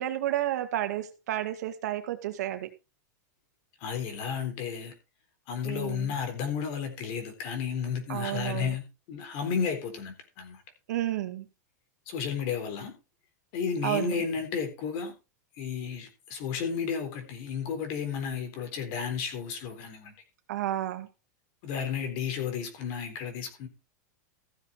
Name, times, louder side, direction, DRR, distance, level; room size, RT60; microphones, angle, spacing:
voice 1, 0.0-2.7 5.6-6.1 8.1-8.7 10.9-11.4 13.8-14.1 20.5-21.1, right 13 dB, 65° right, 2.1 m, -31 dB
voice 2, 3.8-4.9 5.5-8.8 9.1-10.6 12.1-12.9 13.5-15.1 15.6-20.1 21.6-23.7, left 6 dB, 40° left, 4.0 m, -32 dB
15.5 x 7.3 x 4.6 m
supercardioid pair, 175°, 10 cm